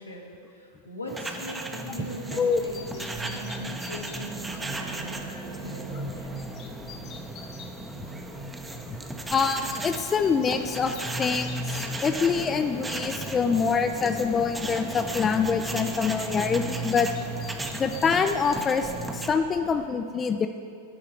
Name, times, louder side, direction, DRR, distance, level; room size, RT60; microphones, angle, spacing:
voice 1, 0.0-6.4, equal, 85° left, -2 dB, 1.5 m, -40 dB
sound 1, 1.1-19.3, right 2 dB, 10° right, 0.7 m, -35 dB
sound 2, 2.5-19.9, left 5 dB, 40° left, 1.0 m, -47 dB
voice 2, 9.3-17.1 17.8-20.5, left 5 dB, 20° left, 8 dB, 0.4 m, -25 dB
11.5 x 4.7 x 6.7 m, 2.6 s
figure-of-eight pair, 90°, 0 cm